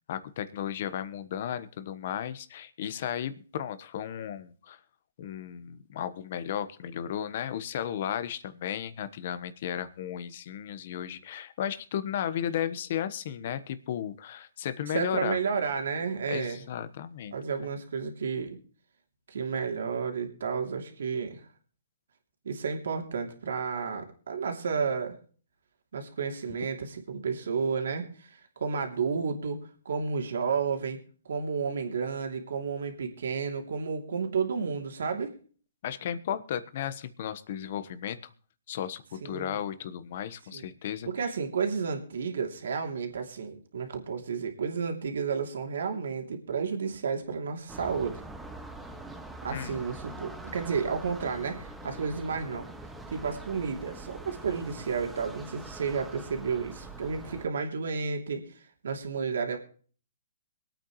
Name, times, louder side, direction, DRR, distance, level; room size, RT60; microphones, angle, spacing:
voice 1, 0.1-4.8 5.2-15.4 16.3-17.3 17.6-17.7 35.8-38.2 38.7-41.3 49.5-49.8, left 9 dB, 50° left, 12 dB, 1.2 m, -34 dB
voice 2, 14.9-16.7 17.3-18.6 19.3-21.4 22.4-25.1 25.9-29.6 29.8-31.0 31.2-35.3 39.2-39.6 40.5-40.7 41.1-48.2 49.4-52.7 53.1-58.4 58.8-59.6, right 5 dB, 70° right, 3 dB, 2.9 m, -32 dB
sound 1, 47.7-57.5, right 2 dB, 5° right, 1.1 m, -44 dB
23.0 x 8.9 x 3.2 m, 0.42 s
hypercardioid pair, 150°, 0 cm